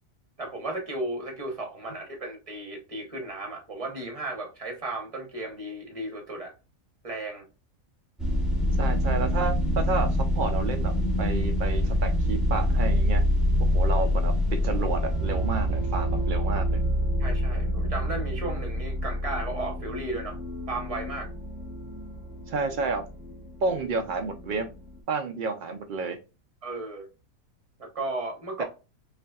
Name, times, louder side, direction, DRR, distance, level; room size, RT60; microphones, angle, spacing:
voice 1, 0.4-6.5 7.0-7.4 17.2-20.4 20.7-21.3 26.6-27.1 27.8-28.6, right 2 dB, 30° right, 0.9 m, -34 dB
sound 1, 8.2-25.0, equal, ahead, 0.8 m, -26 dB
voice 2, 8.8-10.1 10.3-10.9 11.2-13.2 13.7-16.8 22.5-23.0 23.6-24.7 25.1-26.2 28.6-28.7, right 4 dB, 85° right, 0.4 m, -30 dB
5.2 x 2.5 x 2.3 m
omnidirectional pair, 1.5 m